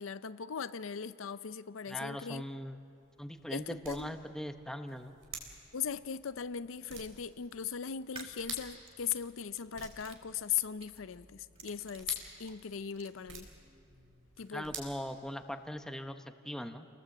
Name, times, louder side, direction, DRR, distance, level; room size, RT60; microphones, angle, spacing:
voice 1, 0.0-2.4 3.5-4.1 5.7-13.5 14.4-14.7, left 8 dB, 80° left, 14 dB, 0.6 m, -38 dB
voice 2, 1.9-2.8 3.2-5.1 14.5-16.9, equal, 5° left, 7 dB, 0.8 m, -40 dB
sound 1, 2.6-15.8, right 5 dB, 75° right, 4.4 m, -51 dB
sound 2, 7.2-7.5 8.0-9.6 10.0-11.0 11.4-13.1, right 4 dB, 30° right, 1.8 m, -53 dB
28.5 x 19.5 x 7.8 m, 2.6 s
head